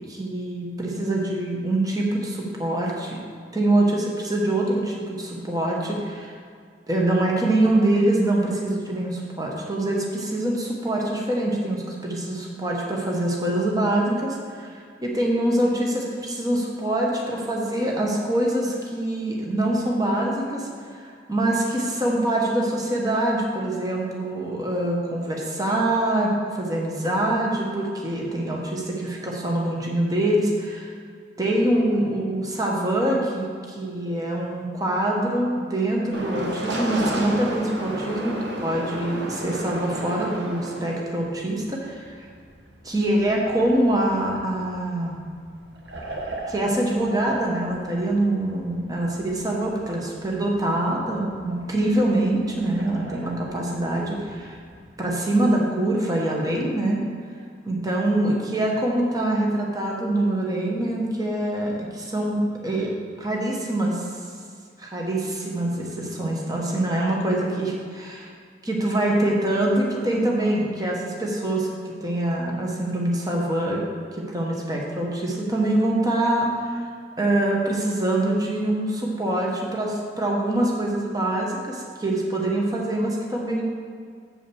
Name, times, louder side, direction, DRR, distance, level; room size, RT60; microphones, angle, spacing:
voice 1, 0.1-3.2 3.5-6.4 6.9-30.9 31.4-42.3 42.8-45.2 46.5-54.6 55.0-57.0 57.6-62.9 63.2-64.1 64.8-68.3 68.6-73.8 74.1-76.9 77.2-83.6, right 1 dB, 20° right, -2 dB, 1.2 m, -24 dB
sound 1, 36.1-41.1 41.9-55.1, right 1 dB, 85° right, 1.3 m, -35 dB
7.7 x 5.1 x 6.9 m, 2.1 s
head